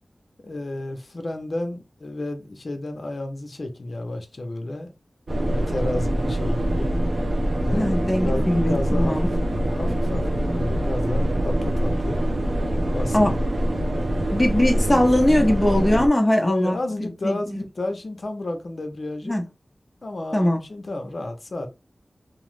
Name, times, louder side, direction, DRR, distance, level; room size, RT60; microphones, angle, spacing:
voice 1, 0.4-4.9 5.5-6.9 7.5-12.2 12.8-13.4 16.4-19.4 20.0-21.7, left 2 dB, 60° left, 0.6 m, -31 dB
sound 1, 5.3-16.1, right 1 dB, 60° right, 0.5 m, -24 dB
voice 2, 7.7-9.3 13.1-13.3 14.3-17.6 19.2-19.4 20.3-20.6, left 1 dB, 20° left, 0.7 m, -21 dB
2.9 x 2.0 x 3.1 m
wide cardioid pair, 80°, 0 cm